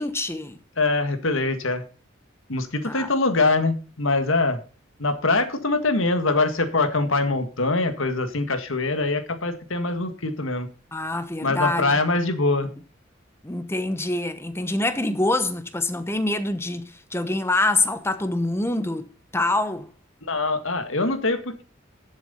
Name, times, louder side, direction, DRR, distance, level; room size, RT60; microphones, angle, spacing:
voice 1, 0.0-0.6 2.8-3.1 10.9-11.9 13.4-19.1 19.3-19.9, left 2 dB, 10° left, 0.9 m, -25 dB
voice 2, 0.8-1.8 2.5-4.6 5.0-10.7 11.4-12.7 20.2-21.6, left 3 dB, 75° left, 1.7 m, -23 dB
11.0 x 7.5 x 5.5 m
head